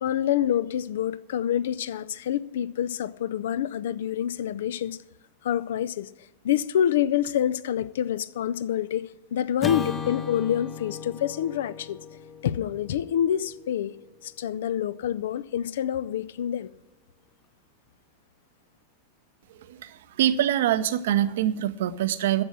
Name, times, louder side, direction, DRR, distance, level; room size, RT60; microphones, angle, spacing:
voice 1, 0.0-5.0 5.4-6.1 6.4-12.0 12.4-14.0 14.2-16.7, left 10 dB, 60° left, 0.4 m, -27 dB
Acoustic guitar / Strum, 9.6-14.0, left 5 dB, 15° left, 0.8 m, -36 dB
voice 2, 19.7-22.4, right 11 dB, 55° right, 0.7 m, -24 dB
11.0 x 7.2 x 9.5 m
figure-of-eight pair, 90°, 0 cm